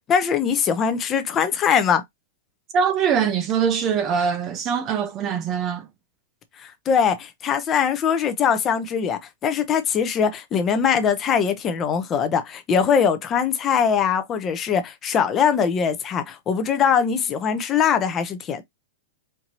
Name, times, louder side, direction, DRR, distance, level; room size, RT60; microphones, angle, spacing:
voice 1, 0.1-2.0 6.6-18.6, left 7 dB, 20° left, 0.6 m, -22 dB
voice 2, 2.7-5.9, right 7 dB, 25° right, 0.5 m, -23 dB
4.4 x 2.7 x 2.9 m
supercardioid pair, 165°, 0 cm